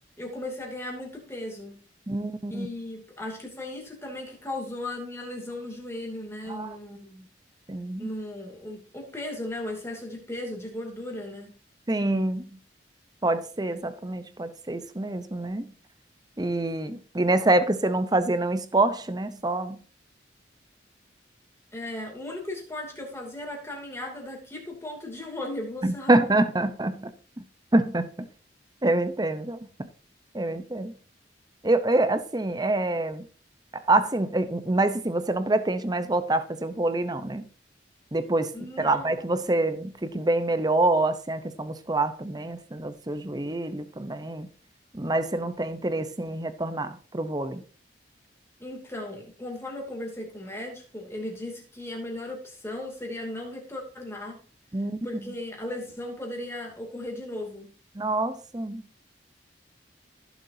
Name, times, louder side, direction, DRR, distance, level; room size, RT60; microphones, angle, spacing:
voice 1, 0.2-1.8 2.5-7.3 8.0-11.5 21.7-26.3 38.5-39.2 48.6-54.4 55.0-57.7, left 1 dB, 15° left, 2.7 m, -36 dB
voice 2, 2.1-2.7 6.5-6.8 7.7-8.1 11.9-12.6 13.2-15.7 16.4-19.8 25.8-27.1 27.4-27.5 27.7-28.1 28.8-29.9 30.3-30.9 31.6-33.2 33.7-37.5 38.1-44.5 44.9-47.6 54.7-55.3 57.9-58.8, right 2 dB, 20° right, 0.7 m, -26 dB
15.5 x 7.2 x 2.7 m
head